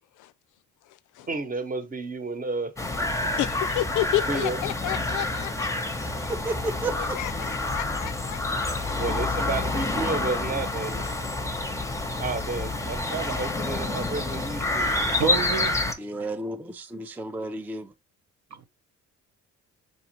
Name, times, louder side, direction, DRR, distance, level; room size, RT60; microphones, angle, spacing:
voice 1, 1.3-2.8 3.2-3.3 4.3-4.6 9.0-11.1 12.2-15.1, right 3 dB, 30° right, 0.9 m, -31 dB
sound 1, 2.8-15.9, left 2 dB, 10° left, 0.7 m, -28 dB
voice 2, 3.4-5.7 7.0-9.2, left 15 dB, 85° left, 0.4 m, -31 dB
voice 3, 6.2-7.2 16.0-17.9, right 2 dB, 5° right, 0.4 m, -32 dB
voice 4, 14.3-16.3 18.5-18.7, right 6 dB, 65° right, 0.8 m, -32 dB
5.2 x 2.4 x 2.8 m
cardioid pair, 90°, 30 cm